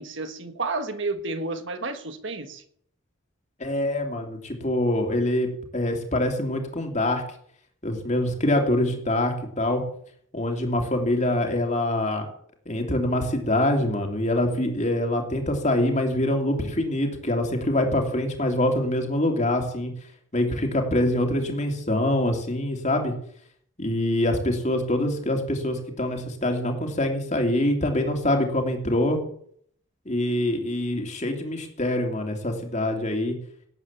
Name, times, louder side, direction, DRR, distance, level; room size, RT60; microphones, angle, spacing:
voice 1, 0.0-2.6, right 3 dB, 60° right, 8 dB, 1.5 m, -31 dB
voice 2, 3.6-7.2 7.8-9.8 10.3-12.3 12.7-19.9 20.3-23.1 23.8-29.2 30.0-33.4, left 1 dB, 35° left, 3 dB, 2.8 m, -25 dB
18.0 x 8.9 x 7.3 m, 0.64 s
head